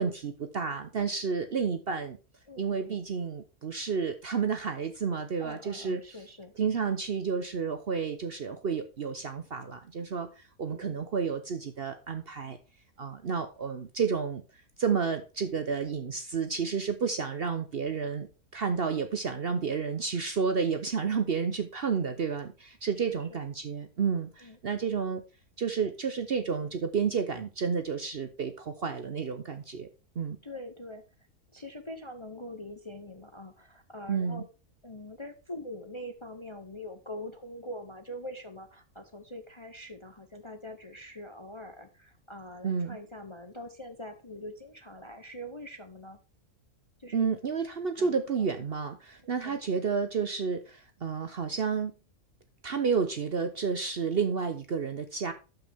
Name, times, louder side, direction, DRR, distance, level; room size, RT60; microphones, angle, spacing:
voice 1, 0.0-2.2 2.6-6.0 6.6-10.3 10.6-12.6 13.0-14.4 14.8-18.3 18.5-25.2 25.6-29.9 30.2-30.4 34.1-34.4 42.6-43.0 47.1-51.9 52.6-55.3, right 6 dB, 50° right, 8 dB, 0.8 m, -31 dB
voice 2, 2.5-3.0 5.4-6.5 10.7-11.0 20.9-21.2 23.0-23.4 24.4-24.6 30.4-31.0 31.5-34.5 34.8-46.2 47.0-47.3 48.0-48.5 49.2-49.6, left 1 dB, 25° left, 7 dB, 0.7 m, -44 dB
12.0 x 5.8 x 3.5 m, 0.32 s
omnidirectional pair, 1.6 m